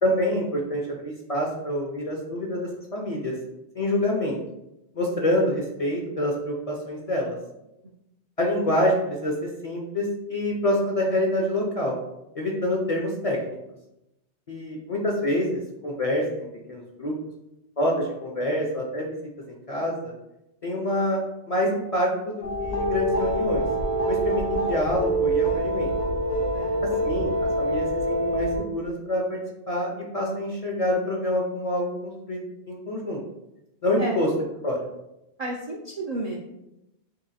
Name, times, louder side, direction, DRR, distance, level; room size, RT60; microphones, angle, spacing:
voice 1, 0.0-3.4 3.7-4.4 4.9-7.3 8.4-11.9 12.3-13.6 14.5-17.1 17.8-19.2 19.5-20.1 20.6-23.6 24.1-25.9 27.0-29.4 29.7-32.4 32.7-33.2 33.8-34.3 34.6-34.8, left 1 dB, 45° left, -1 dB, 0.5 m, -26 dB
sound 1, 22.4-28.6, right 1 dB, 80° left, 1.1 m, -25 dB
voice 2, 35.4-36.4, right 2 dB, 55° right, -2 dB, 0.4 m, -31 dB
3.0 x 2.8 x 4.0 m, 0.88 s
omnidirectional pair, 1.2 m